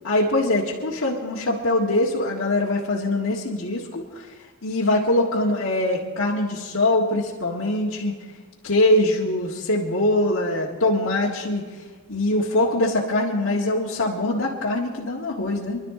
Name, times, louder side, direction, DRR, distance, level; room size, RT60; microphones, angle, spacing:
voice 1, 0.0-4.3 4.6-8.1 8.6-11.7 12.1-15.8, left 1 dB, 75° left, -4 dB, 1.8 m, -23 dB
26.5 x 12.0 x 3.8 m, 1.4 s
head